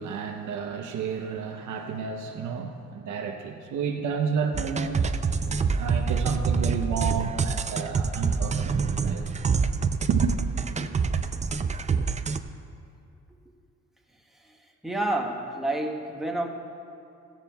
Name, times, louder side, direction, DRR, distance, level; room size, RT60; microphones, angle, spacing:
voice 1, 0.0-5.1 5.7-10.4, right 6 dB, 80° right, 3 dB, 0.9 m, -31 dB
sound 1, 4.5-12.4, right 5 dB, 25° right, 0.4 m, -26 dB
voice 2, 14.8-16.5, right 1 dB, ahead, -1 dB, 1.3 m, -28 dB
16.5 x 14.5 x 2.3 m, 2.6 s
cardioid pair, 90°, 30 cm